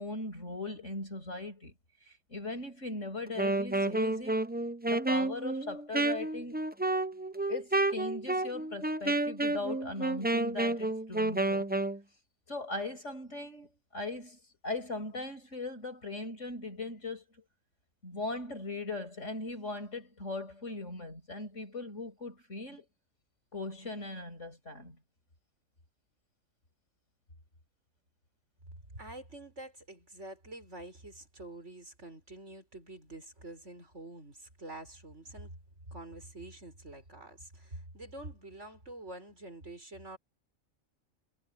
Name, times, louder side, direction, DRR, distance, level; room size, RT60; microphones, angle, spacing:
voice 1, 0.0-1.7 2.1-4.3 4.9-6.6 7.5-11.6 12.5-17.2 18.0-22.8 23.5-25.0, left 2 dB, 60° left, 6.5 m, -39 dB
Wind instrument woodwind instrument, 3.3-12.0, right 2 dB, 10° right, 0.5 m, -30 dB
voice 2, 28.9-35.5 35.9-40.2, right 2 dB, 60° right, 6.5 m, -47 dB
omnidirectional pair, 1.4 m